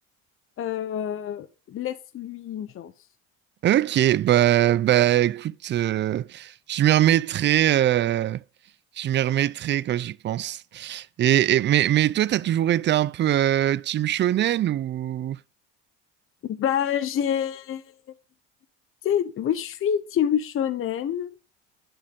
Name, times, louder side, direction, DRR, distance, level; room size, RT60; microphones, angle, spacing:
voice 1, 0.6-2.9 16.4-17.8 19.0-21.3, left 9 dB, 45° left, 1.0 m, -27 dB
voice 2, 3.6-8.4 9.0-15.4, right 12 dB, 35° right, 0.5 m, -22 dB
10.5 x 6.4 x 3.7 m
supercardioid pair, 95°, 31 cm